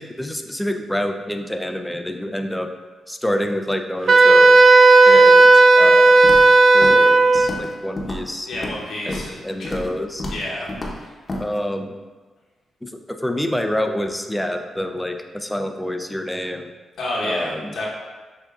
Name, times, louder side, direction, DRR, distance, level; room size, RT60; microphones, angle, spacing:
voice 1, 0.0-2.7 3.1-4.6 5.0-6.2 6.7-8.5 9.1-10.2 11.4-12.0 12.8-16.7 17.2-17.7, left 1 dB, 10° left, 5 dB, 0.4 m, -27 dB
Wind instrument woodwind instrument, 4.1-7.5, right 3 dB, 55° right, 0.3 m, -11 dB
Walk footsteps, 6.2-6.5 6.8-7.1 7.4-7.7 8.0-8.8 9.1-9.3 9.6-9.9 10.2-10.4 10.7-11.0 11.3-11.4, left 1 dB, 40° left, 0.8 m, -30 dB
voice 2, 8.5-9.7 10.3-10.7 11.0-11.1 17.0-17.9, left 1 dB, 70° left, -5 dB, 0.9 m, -29 dB
6.6 x 2.7 x 2.4 m, 1.3 s
supercardioid pair, 50°, 0 cm